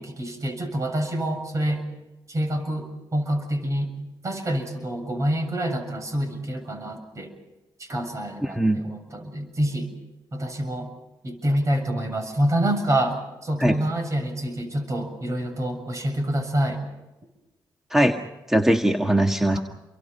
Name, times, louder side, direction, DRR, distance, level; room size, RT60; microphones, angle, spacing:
voice 1, 0.0-1.9 2.3-3.9 4.2-7.3 7.8-9.9 10.3-10.9 11.2-16.8 19.5-19.6, right 1 dB, 40° right, 6 dB, 7.2 m, -27 dB
voice 2, 8.4-8.8 13.6-13.8 17.9-18.2 18.5-19.6, right 1 dB, 5° right, 4 dB, 1.8 m, -20 dB
29.5 x 23.5 x 5.6 m, 1.0 s
cardioid pair, 75°, 8 cm